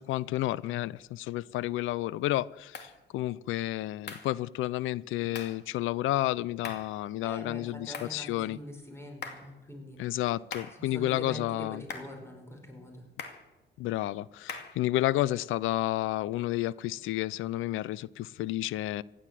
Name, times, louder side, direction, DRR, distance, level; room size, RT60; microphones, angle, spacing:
voice 1, 0.0-8.6 10.0-11.8 13.8-19.0, left 15 dB, 85° left, 0.5 m, -31 dB
sound 1, 2.7-3.0 4.1-4.3 5.3-5.6 6.6-7.0 7.9-8.2 9.2-9.5 10.5-10.8 11.9-12.2 13.2-13.5 14.5-14.8, left 5 dB, 60° left, 2.4 m, -41 dB
voice 2, 7.2-10.0 10.7-13.1, equal, 15° left, 4.9 m, -44 dB
16.0 x 11.0 x 7.6 m
cardioid pair, 90°, 20 cm